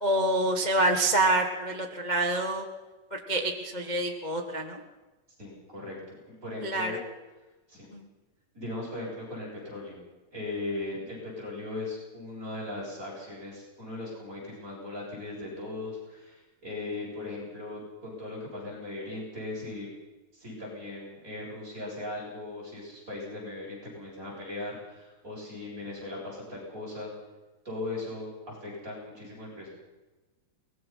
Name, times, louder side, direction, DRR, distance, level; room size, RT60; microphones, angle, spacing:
voice 1, 0.0-2.6 3.1-4.8 6.6-7.0 7.9-8.1, right 1 dB, 75° left, 2 dB, 0.4 m, -27 dB
voice 2, 5.4-7.0 7.7-7.9 8.5-10.0 10.3-19.9 20.3-27.1 27.6-29.7, left 2 dB, 20° right, -4 dB, 8.1 m, -38 dB
23.0 x 20.0 x 5.7 m, 1.2 s
omnidirectional pair, 4.1 m